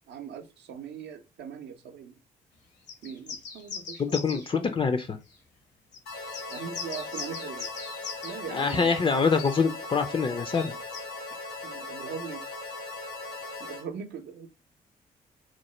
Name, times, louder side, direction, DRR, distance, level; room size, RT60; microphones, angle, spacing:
voice 1, 0.1-2.1 3.0-4.4 6.5-7.7 8.2-9.1 11.6-12.5 13.6-14.5, right 7 dB, 65° right, 0.5 m, -40 dB
sound 1, 2.9-4.5 5.3-5.4 5.9-8.4 8.6-8.9 9.4-9.6 10.5-11.0, left 5 dB, 65° left, 0.8 m, -40 dB
voice 2, 4.0-5.2 8.5-10.8, left 5 dB, 30° left, 0.4 m, -25 dB
sound 2, 6.1-13.8, left 3 dB, 80° left, 1.3 m, -39 dB
3.0 x 2.1 x 3.0 m
hypercardioid pair, 45°, 19 cm